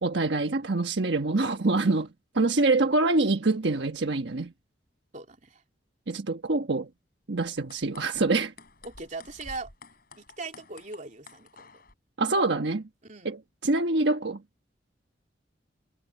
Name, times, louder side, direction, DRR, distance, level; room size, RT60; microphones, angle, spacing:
voice 1, 0.0-2.1 2.3-4.5 6.1-6.9 7.3-8.5 12.2-12.9 13.2-14.4, right 2 dB, 85° right, 1.3 m, -25 dB
voice 2, 5.1-5.6 8.8-9.7 10.2-11.8 13.0-13.3, right 3 dB, 45° right, 3.2 m, -40 dB
sound 1, 7.5-11.9, left 3 dB, 55° left, 7.6 m, -51 dB
head